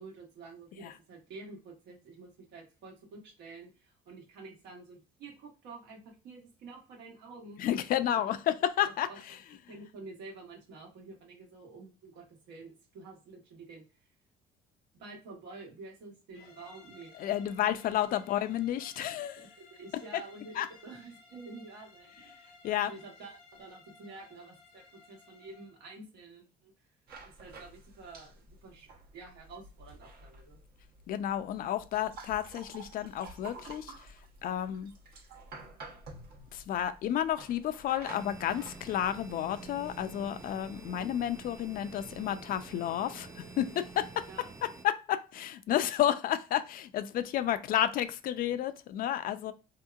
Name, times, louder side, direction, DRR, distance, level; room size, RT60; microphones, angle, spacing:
voice 1, 0.0-7.6 9.1-9.2 9.7-13.8 14.9-17.1 17.6-17.7 18.1-18.2 19.4-22.5 22.9-26.7 27.2-30.6 44.3-44.5, right 3 dB, 85° right, 1.2 m, -49 dB
voice 2, 7.6-9.4 17.1-19.5 20.6-20.7 22.6-22.9 31.1-34.9 36.5-44.3 44.8-49.5, left 11 dB, 55° left, 0.4 m, -31 dB
sound 1, 16.3-25.8, left 4 dB, 90° left, 0.8 m, -57 dB
sound 2, 27.1-42.8, right 2 dB, 65° right, 1.0 m, -52 dB
sound 3, 38.1-44.8, right 4 dB, 15° right, 0.4 m, -48 dB
3.5 x 2.8 x 2.3 m
cardioid pair, 110°, 17 cm